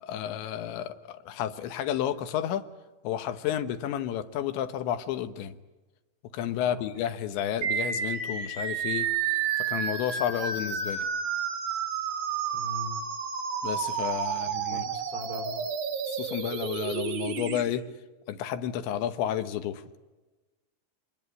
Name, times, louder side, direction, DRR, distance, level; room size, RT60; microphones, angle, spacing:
voice 1, 0.0-2.7 3.0-5.6 6.3-9.1 9.6-11.1 13.6-14.9 16.1-17.9 18.3-19.8, left 10 dB, 75° left, 11 dB, 3.3 m, -31 dB
sound 1, 7.6-17.6, right 7 dB, 75° right, 5.3 m, -31 dB
voice 2, 12.5-13.0 14.3-15.5, left 1 dB, 35° right, 3 dB, 4.8 m, -41 dB
26.0 x 21.5 x 9.7 m, 1.2 s
omnidirectional pair, 5.4 m